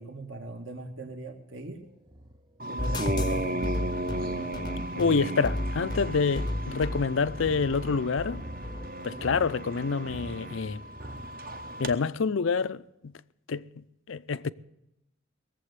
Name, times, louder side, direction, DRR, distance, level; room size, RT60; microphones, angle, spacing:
voice 1, 0.0-1.8 2.7-3.7 9.1-9.3, right 2 dB, 60° right, 1.7 m, -39 dB
sound 1, 1.6-12.0, equal, 20° right, 0.8 m, -47 dB
sound 2, 2.6-11.9, right 1 dB, 45° right, 1.1 m, -35 dB
sound 3, 2.8-8.9, left 1 dB, 20° left, 0.7 m, -33 dB
voice 2, 4.9-8.4 9.0-10.8 11.8-13.1 13.5-14.5, left 5 dB, 70° left, 0.5 m, -27 dB
20.0 x 7.7 x 8.1 m
head